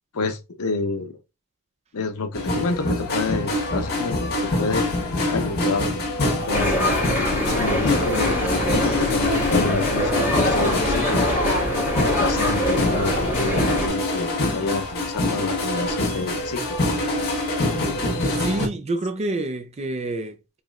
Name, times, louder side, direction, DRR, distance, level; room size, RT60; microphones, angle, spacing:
voice 1, 0.1-1.2 1.9-4.9 5.3-5.9 6.5-11.4 12.0-16.8, left 3 dB, 75° left, 0.7 m, -28 dB
sound 1, 2.3-18.7, left 2 dB, 45° left, 1.2 m, -25 dB
sound 2, 6.5-13.9, equal, 10° right, 1.8 m, -23 dB
voice 2, 18.3-20.6, right 2 dB, 30° right, 0.4 m, -28 dB
4.7 x 3.1 x 2.4 m
head